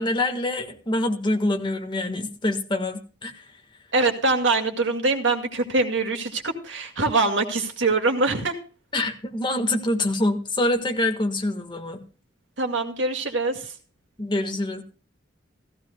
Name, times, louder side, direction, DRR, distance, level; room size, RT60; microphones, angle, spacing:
voice 1, 0.0-3.4 8.9-12.0 14.2-14.8, left 1 dB, 25° left, 4 dB, 1.5 m, -25 dB
voice 2, 3.9-8.5 12.6-13.7, right 3 dB, 75° right, 4 dB, 2.1 m, -23 dB
16.0 x 15.0 x 2.3 m, 0.38 s
head